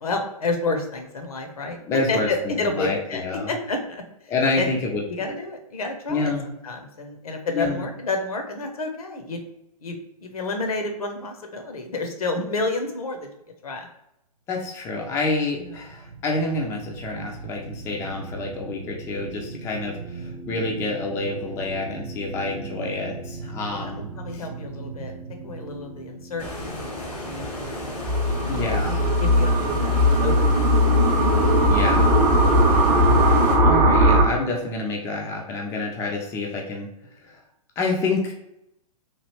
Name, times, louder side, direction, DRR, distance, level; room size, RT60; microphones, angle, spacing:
voice 1, 0.0-1.8 2.1-4.0 4.5-4.7 5.1-9.4 9.8-9.9 10.2-13.3 13.6-13.9 15.6-15.8 22.7-23.0 23.7-25.1 25.4-27.0 27.2-27.9 28.4-31.0 31.3-31.4 32.3-32.8, left 3 dB, 65° left, 5 dB, 0.7 m, -30 dB
voice 2, 1.9-3.5 4.3-5.0 6.1-6.5 7.5-7.8 14.5-24.0 24.3-24.4 28.5-29.1 31.7-32.2 33.6-36.9 37.2-37.4 37.8-38.3, left 3 dB, 15° left, 0 dB, 0.4 m, -28 dB
sound 1, 15.1-28.6, right 4 dB, 65° right, 0.7 m, -39 dB
Stream, 26.4-33.6, left 1 dB, 85° left, 1.2 m, -33 dB
sound 2, 28.1-34.3, equal, 25° right, 0.6 m, -18 dB
3.1 x 2.4 x 3.0 m, 0.84 s
figure-of-eight pair, 120°, 20 cm